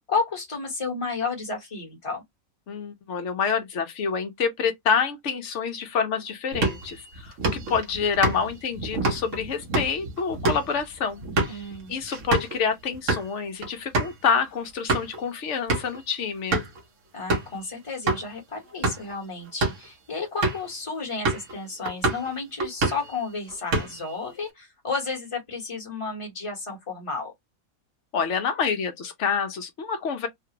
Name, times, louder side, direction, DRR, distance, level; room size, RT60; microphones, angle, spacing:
voice 1, 0.1-2.2 11.5-11.9 17.1-27.3, left 4 dB, 25° left, 1.2 m, -32 dB
voice 2, 2.7-16.6 28.1-30.3, left 6 dB, 60° left, 1.0 m, -27 dB
sound 1, 6.5-12.6 12.9-13.3 13.6-13.7 13.9-14.2 14.6-15.2 15.7-16.0 16.5-16.8 17.3-17.6 18.1-18.2 18.7-19.1 19.5-19.9 20.4-20.7 21.3-21.5 21.9-22.3 22.6-23.1 23.5-24.1, right 2 dB, 60° right, 1.4 m, -27 dB
3.3 x 2.3 x 2.9 m
omnidirectional pair, 1.5 m